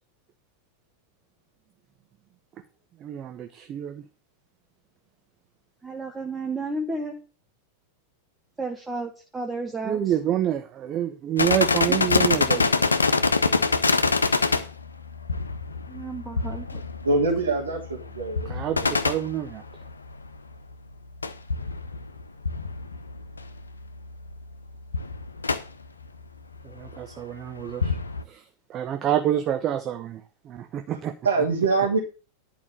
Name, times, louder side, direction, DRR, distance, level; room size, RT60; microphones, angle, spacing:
voice 1, 3.0-4.0 9.8-12.8 18.5-19.6 26.6-28.0 28.3-28.4 28.7-31.1, right 11 dB, 30° right, 7 dB, 0.9 m, -28 dB
voice 2, 5.8-7.2 8.6-10.0 15.9-16.8, right 2 dB, 10° right, 3 dB, 1.3 m, -32 dB
sound 1, 11.4-20.3 21.2-23.6 23.9-24.0 24.3-24.5 24.9-25.6 26.8-27.0 27.6-28.2, left 4 dB, 75° left, 0.9 m, -25 dB
voice 3, 17.0-18.5 18.8-18.9 30.9-31.0 31.2-32.0, right 3 dB, 70° right, -4 dB, 2.9 m, -24 dB
11.0 x 5.0 x 6.8 m, 0.33 s
figure-of-eight pair, 90°, 0 cm